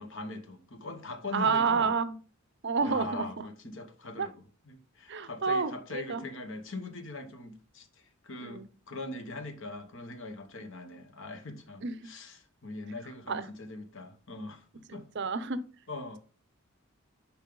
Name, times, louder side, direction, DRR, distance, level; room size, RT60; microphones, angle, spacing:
voice 1, 0.0-2.0 2.8-7.9 8.2-14.6 14.9-15.1 15.9-16.2, left 2 dB, 60° left, 1.2 m, -41 dB
voice 2, 1.3-2.2 2.6-3.4 4.2-4.3 5.1-6.2 8.4-8.7 11.8-12.1 13.3-13.5 14.9-15.6, right 5 dB, 55° right, 0.6 m, -29 dB
10.5 x 4.6 x 3.9 m
head